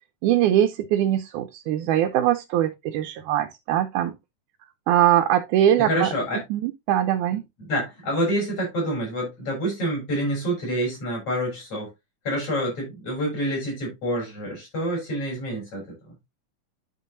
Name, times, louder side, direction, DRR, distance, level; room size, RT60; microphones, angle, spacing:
voice 1, 0.2-4.1 4.9-6.1 6.5-7.4, right 11 dB, 85° right, 2.2 m, -22 dB
voice 2, 5.8-6.4 7.6-11.9 12.3-16.0, equal, 50° left, 7.1 m, -27 dB
11.5 x 5.4 x 2.7 m
omnidirectional pair, 3.5 m